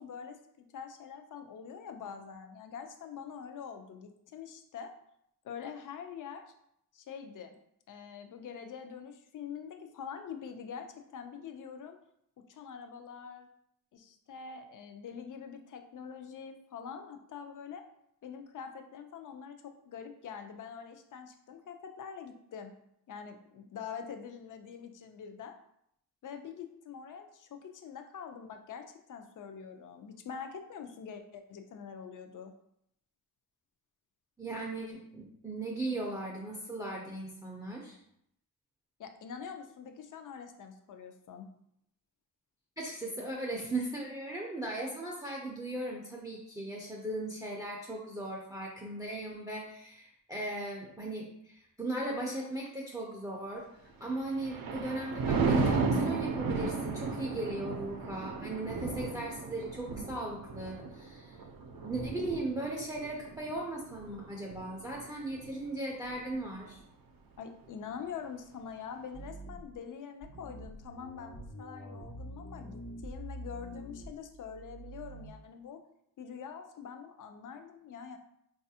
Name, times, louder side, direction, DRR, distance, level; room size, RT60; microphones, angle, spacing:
voice 1, 0.0-4.9 5.4-6.5 6.9-7.6 7.9-12.0 12.5-13.5 13.9-17.8 18.2-19.6 19.9-22.7 23.1-25.6 26.2-32.5 39.0-41.5 67.4-75.8 76.2-78.2, left 7 dB, 60° left, 6 dB, 0.5 m, -45 dB
voice 2, 34.4-38.0 42.8-53.6 54.0-61.4 61.8-66.8, right 2 dB, 10° right, -2 dB, 0.4 m, -38 dB
Thunder, 54.1-65.6 66.0-66.4, right 4 dB, 70° right, 0.5 m, -34 dB
sound 1, 69.1-69.8 70.2-75.3, right 1 dB, 80° left, 0.9 m, -46 dB
4.0 x 2.4 x 2.7 m, 0.74 s
wide cardioid pair, 135°, 36 cm